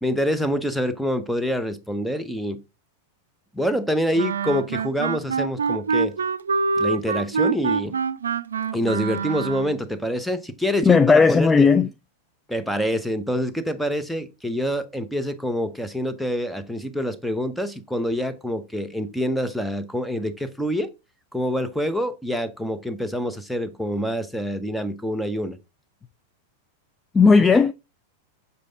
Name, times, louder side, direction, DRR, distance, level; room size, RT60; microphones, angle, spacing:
voice 1, 0.0-2.6 3.5-6.1 6.8-8.0 8.7-11.7 12.5-20.9 21.3-25.6, equal, ahead, 0.9 m, -26 dB
Wind instrument woodwind instrument, 4.2-9.8, right 5 dB, 80° right, 0.5 m, -25 dB
voice 2, 10.9-11.9 27.1-27.7, left 5 dB, 20° left, 0.4 m, -15 dB
6.6 x 5.1 x 3.8 m
hypercardioid pair, 100°, 0 cm